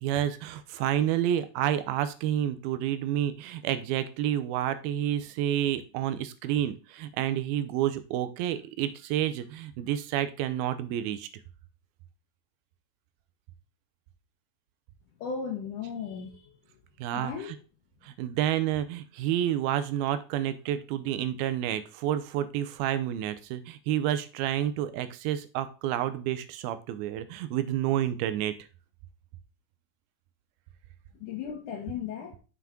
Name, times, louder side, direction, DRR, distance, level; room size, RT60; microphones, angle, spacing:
voice 1, 0.0-11.3 17.0-17.3 18.0-28.5, right 11 dB, 90° right, 12 dB, 2.6 m, -29 dB
voice 2, 15.2-16.6 17.1-17.6 31.2-32.4, left 6 dB, 70° left, 0 dB, 2.3 m, -36 dB
7.0 x 5.9 x 3.6 m, 0.34 s
omnidirectional pair, 4.2 m